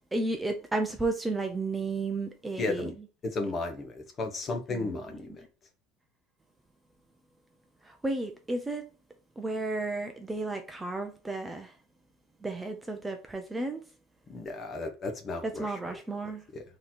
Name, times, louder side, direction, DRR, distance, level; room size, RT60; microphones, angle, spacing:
voice 1, 0.1-2.9 8.0-8.8 9.4-11.7 12.4-13.8 15.4-16.4, right 2 dB, 10° right, 0.4 m, -32 dB
voice 2, 2.6-2.9 3.2-5.3 14.3-15.8 16.5-16.6, left 3 dB, 25° left, 0.9 m, -34 dB
3.9 x 2.9 x 4.2 m
cardioid pair, 160°, 0 cm